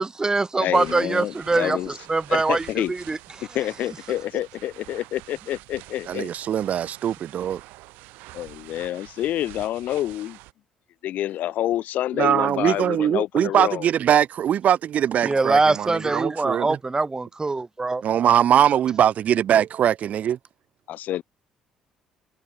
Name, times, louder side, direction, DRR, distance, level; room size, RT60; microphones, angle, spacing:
voice 1, 0.0-3.2 15.2-18.0, right 3 dB, 20° right, 0.7 m, -23 dB
voice 2, 0.5-1.9 2.3-2.9 3.5-6.3 8.3-10.4 11.0-13.9 20.9-21.2, left 13 dB, 65° left, 0.7 m, -28 dB
sound 1, 0.7-10.5, right 22 dB, 75° right, 3.0 m, -46 dB
voice 3, 6.1-7.6 12.2-16.8 18.0-20.4, right 10 dB, 55° right, 0.4 m, -21 dB
hypercardioid pair, 55°, 3 cm